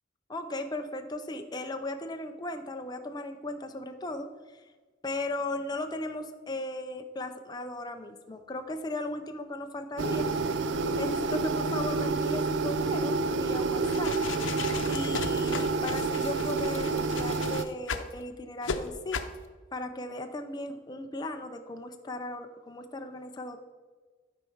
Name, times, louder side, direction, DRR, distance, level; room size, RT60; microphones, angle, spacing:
voice 1, 0.3-4.7 5.0-10.3 10.9-14.2 14.9-19.2 19.7-23.6, left 2 dB, 20° left, 5 dB, 0.6 m, -37 dB
sound 1, 10.0-17.6, right 3 dB, 70° right, 0.5 m, -29 dB
sound 2, 13.7-18.1 18.6-18.8 19.1-19.4, left 5 dB, 90° left, 0.7 m, -36 dB
12.0 x 4.5 x 5.6 m, 1.4 s
head